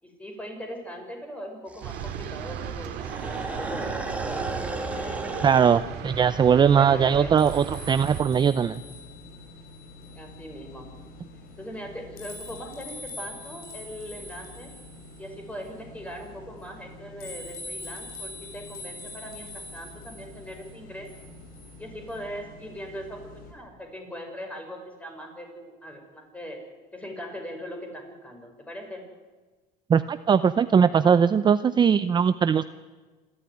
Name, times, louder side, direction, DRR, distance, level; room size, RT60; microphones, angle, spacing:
voice 1, 0.0-4.0 4.9-5.2 6.6-7.3 10.1-10.9 11.5-14.7 15.2-21.1 21.8-26.6 26.9-29.0, equal, 10° left, 3 dB, 5.9 m, -40 dB
sound 1, 1.7-5.8, right 2 dB, 10° right, 2.5 m, -34 dB
sound 2, 1.8-8.2, right 9 dB, 80° right, 2.4 m, -36 dB
sound 3, 4.2-23.5, left 2 dB, 65° left, 6.6 m, -44 dB
voice 2, 5.4-8.8 29.9-32.6, right 7 dB, 25° right, 13 dB, 0.6 m, -20 dB
27.0 x 13.0 x 9.7 m, 1.3 s
cardioid pair, 130°, 16 cm